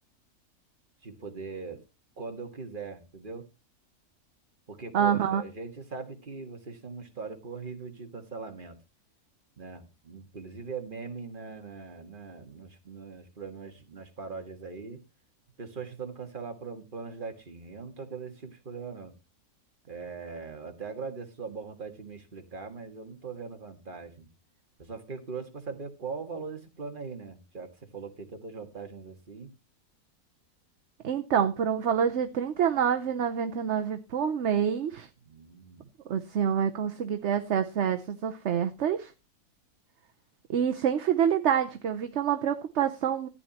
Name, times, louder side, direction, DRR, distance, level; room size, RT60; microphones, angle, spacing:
voice 1, 1.0-1.8 2.2-3.4 4.7-8.8 9.6-15.0 15.6-19.1 19.9-24.3 24.8-29.5 35.2-35.9, right 5 dB, 35° right, 1.8 m, -40 dB
voice 2, 4.9-5.4 31.0-35.1 36.1-39.1 40.5-43.3, right 8 dB, 55° right, 1.0 m, -27 dB
14.5 x 9.4 x 2.9 m
omnidirectional pair, 1.6 m